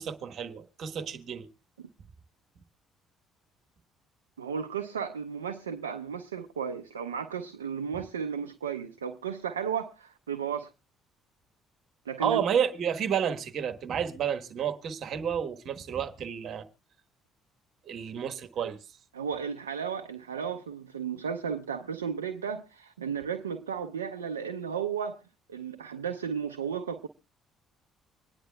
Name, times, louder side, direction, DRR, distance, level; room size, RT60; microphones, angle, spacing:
voice 1, 0.0-1.5 7.9-8.0 12.2-16.7 17.8-18.8, right 8 dB, 55° right, 1.2 m, -31 dB
voice 2, 4.4-10.7 12.1-12.4 19.1-25.2 25.5-27.1, right 7 dB, 90° right, 0.5 m, -34 dB
25.0 x 10.0 x 2.2 m
hypercardioid pair, 50°, 0 cm